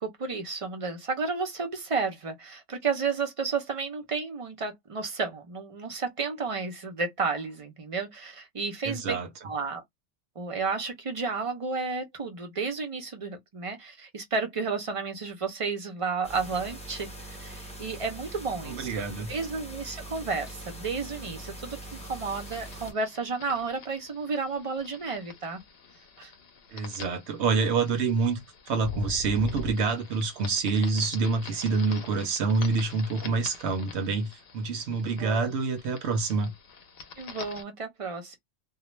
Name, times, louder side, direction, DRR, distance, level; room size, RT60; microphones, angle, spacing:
voice 1, 0.0-9.2 9.4-9.8 10.4-25.6 26.2-26.3 35.2-35.5 37.2-38.4, right 4 dB, 40° right, 0.5 m, -32 dB
voice 2, 8.8-9.3 18.7-19.3 26.7-28.4 28.7-36.5, right 4 dB, 70° right, 0.9 m, -27 dB
sound 1, 16.2-22.9, right 1 dB, 5° left, 0.7 m, -42 dB
sound 2, 21.9-37.6, left 4 dB, 60° left, 0.7 m, -45 dB
2.4 x 2.0 x 2.9 m
omnidirectional pair, 1.3 m